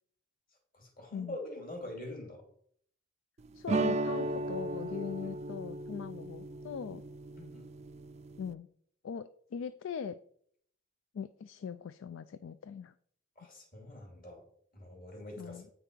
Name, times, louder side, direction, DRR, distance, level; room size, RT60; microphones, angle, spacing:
voice 1, 0.7-2.4 7.4-7.7 13.4-14.4 14.7-15.6, left 1 dB, 45° left, 1 dB, 2.4 m, -44 dB
voice 2, 3.5-7.0 8.4-8.7 9.0-10.2 11.1-12.9 15.4-15.7, left 7 dB, 65° left, 13 dB, 0.3 m, -40 dB
sound 1, 3.7-8.5, right 2 dB, 30° right, 0.4 m, -36 dB
8.6 x 4.7 x 5.1 m, 0.64 s
head